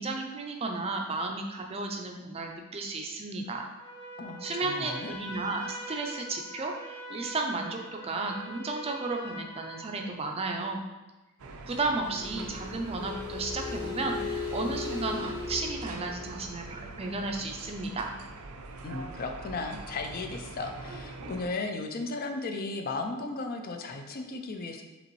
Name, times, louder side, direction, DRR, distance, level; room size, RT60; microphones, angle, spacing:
voice 1, 0.0-3.7 4.4-10.8 11.7-18.2, right 3 dB, 30° right, 2 dB, 0.4 m, -33 dB
Trumpet, 3.8-10.2, right 1 dB, 5° left, 0.8 m, -43 dB
voice 2, 4.2-5.1 18.8-24.8, left 3 dB, 45° left, 4 dB, 0.4 m, -35 dB
sound 1, 11.4-21.5, right 3 dB, 85° right, 0.5 m, -44 dB
sound 2, 12.0-17.5, left 4 dB, 70° left, 0.8 m, -38 dB
5.1 x 3.0 x 3.1 m, 1.1 s
head